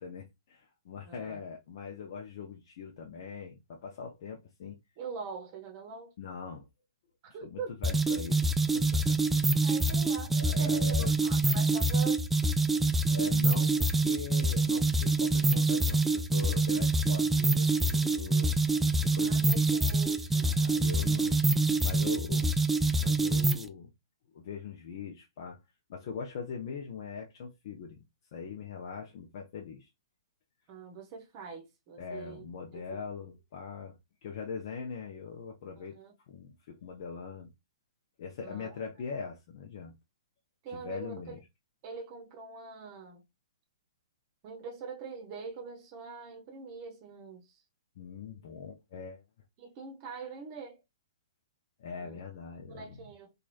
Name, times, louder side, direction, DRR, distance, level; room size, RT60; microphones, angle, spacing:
voice 1, 0.0-4.8 6.2-6.7 7.4-9.2 9.6-9.7 10.3-11.1 13.1-18.6 19.0-21.4 21.8-22.5 23.0-23.9 24.3-25.6 25.9-28.0 28.3-29.9 32.0-36.0 36.3-37.5 38.2-39.9 40.7-41.4 48.0-49.2 51.8-53.1, left 6 dB, 55° left, 0.6 m, -42 dB
voice 2, 1.1-1.4 5.0-6.1 7.2-7.7 9.6-12.3 19.2-20.6 21.2-21.4 30.7-32.5 32.7-33.0 35.8-36.1 38.4-38.7 40.6-41.4 41.8-43.2 44.4-47.6 49.6-50.8 52.0-52.2 52.7-53.3, right 5 dB, 40° right, 0.8 m, -43 dB
sound 1, 7.8-23.7, right 2 dB, 5° right, 0.3 m, -26 dB
3.0 x 2.4 x 2.4 m
hypercardioid pair, 120°, 3 cm